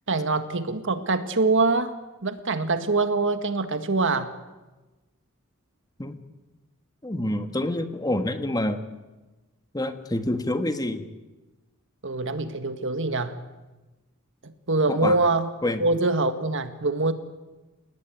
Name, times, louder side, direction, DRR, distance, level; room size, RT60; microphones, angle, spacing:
voice 1, 0.1-2.0 2.2-4.3 12.0-13.4 14.4-15.5 15.8-17.1, right 3 dB, 60° right, 10 dB, 1.9 m, -24 dB
voice 2, 7.0-8.8 9.7-11.0 14.9-15.2 15.6-15.8, left 1 dB, 20° left, 8 dB, 1.6 m, -27 dB
29.0 x 18.0 x 9.3 m, 1.1 s
head